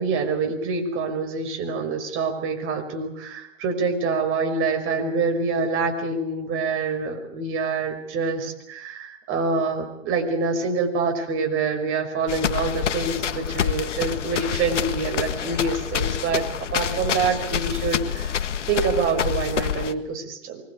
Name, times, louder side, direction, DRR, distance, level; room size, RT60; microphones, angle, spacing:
voice 1, 0.0-18.4 18.7-20.6, right 4 dB, 35° right, 3 dB, 5.8 m, -26 dB
sound 1, 12.3-19.9, left 9 dB, 85° left, 1.7 m, -27 dB
24.5 x 21.0 x 8.4 m, 0.78 s
hypercardioid pair, 125°, 36 cm